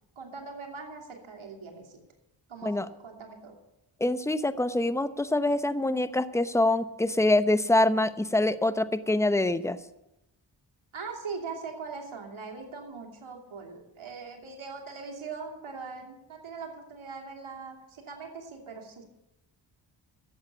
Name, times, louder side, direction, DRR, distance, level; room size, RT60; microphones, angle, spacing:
voice 1, 0.2-2.0 2.5-3.6 10.9-19.0, right 4 dB, 75° right, 1 dB, 2.8 m, -41 dB
voice 2, 4.0-9.8, left 2 dB, 5° left, 13 dB, 0.8 m, -25 dB
12.0 x 8.1 x 8.4 m, 0.90 s
cardioid pair, 45°, 49 cm